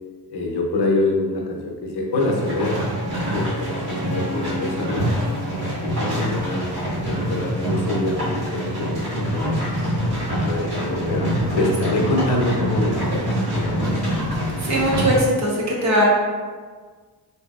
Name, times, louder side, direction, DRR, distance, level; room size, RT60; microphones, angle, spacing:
voice 1, 0.3-2.9 3.3-5.2 5.8-6.7 7.0-9.6 10.4-14.0, left 2 dB, 80° left, 0 dB, 0.7 m, -25 dB
sound 1, 2.1-15.2, equal, 70° right, 1.4 m, -25 dB
Wind instrument woodwind instrument, 2.2-6.5, left 1 dB, 20° right, 0.9 m, -35 dB
voice 2, 14.6-16.0, equal, 45° right, -4 dB, 1.0 m, -20 dB
3.9 x 2.7 x 2.3 m, 1.5 s
cardioid pair, 100°, 39 cm